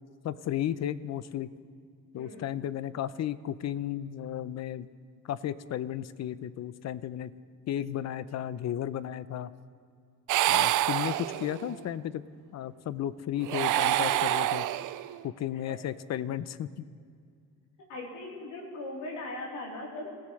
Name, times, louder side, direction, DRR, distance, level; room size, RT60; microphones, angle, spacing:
voice 1, 0.2-1.5 2.1-4.9 5.2-7.3 7.7-9.5 10.5-12.2 12.5-14.6 15.2-16.9, left 11 dB, 60° left, 15 dB, 0.7 m, -34 dB
voice 2, 2.1-2.5 14.1-14.2 15.6-15.7 17.9-20.2, left 2 dB, 85° left, -2 dB, 3.7 m, -39 dB
sound 1, 10.3-11.8 13.4-15.2, right 14 dB, 85° right, 0.5 m, -27 dB
27.5 x 15.5 x 3.3 m, 2.2 s
cardioid pair, 90°, 30 cm